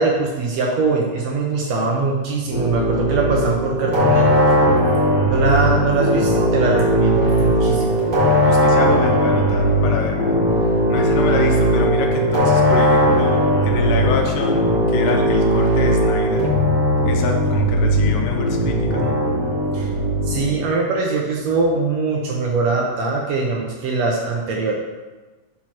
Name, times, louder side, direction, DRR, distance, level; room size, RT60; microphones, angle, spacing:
voice 1, 0.0-4.5 5.3-8.0 19.7-19.9 20.2-24.7, right 3 dB, 75° right, -1 dB, 1.7 m, -22 dB
sound 1, 2.5-20.6, equal, 30° right, 1.9 m, -18 dB
voice 2, 8.4-10.4 10.6-16.5 17.1-19.2, left 4 dB, 85° left, 2 dB, 2.5 m, -26 dB
6.2 x 4.4 x 5.8 m, 1.2 s
omnidirectional pair, 3.6 m